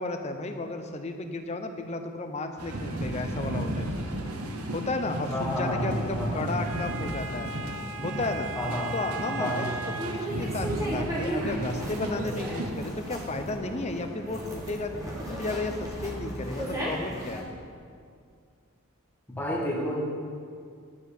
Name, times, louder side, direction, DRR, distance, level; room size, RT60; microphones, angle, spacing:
voice 1, 0.0-4.1 4.7-7.5 8.0-8.5 8.9-9.7 10.1-15.0 15.3-17.4, left 2 dB, 30° left, 6 dB, 0.6 m, -33 dB
sound 1, 2.6-12.7, right 1 dB, 90° right, 0.9 m, -33 dB
voice 2, 5.3-6.4 8.5-8.9 9.4-9.7 19.3-20.0, left 1 dB, 10° left, -6 dB, 1.7 m, -30 dB
sound 2, 9.9-17.4, right 1 dB, 15° right, 1.4 m, -35 dB
10.5 x 4.6 x 6.9 m, 2.3 s
head